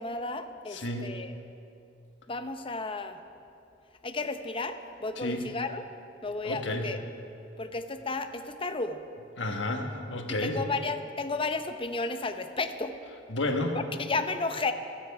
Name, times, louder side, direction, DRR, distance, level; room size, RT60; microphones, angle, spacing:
voice 1, 0.0-1.3 2.3-3.2 4.0-5.8 6.2-7.0 7.6-9.0 10.3-13.0 13.7-14.7, left 3 dB, 30° left, 8 dB, 0.8 m, -33 dB
voice 2, 0.7-1.1 5.2-5.5 6.4-6.9 9.4-10.6 13.3-13.8, left 2 dB, 75° left, 3 dB, 1.5 m, -31 dB
24.5 x 9.7 x 4.8 m, 2.6 s
head